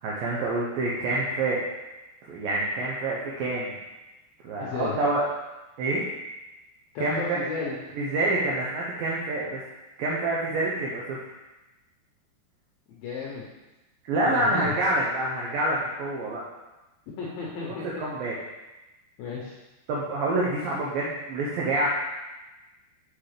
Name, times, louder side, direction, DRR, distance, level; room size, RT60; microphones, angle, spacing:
voice 1, 0.0-1.6 2.2-3.8 4.4-5.2 5.8-6.0 7.0-7.4 8.0-9.6 10.0-11.2 14.1-16.4 18.0-18.3 19.9-21.9, right 2 dB, 90° right, -4 dB, 2.0 m, -27 dB
voice 2, 4.6-5.0 6.9-7.8 12.9-13.4 14.2-14.7 17.2-18.1 19.2-19.6, left 5 dB, 80° left, -4 dB, 2.2 m, -33 dB
6.1 x 5.9 x 3.3 m, 1.1 s
omnidirectional pair, 5.2 m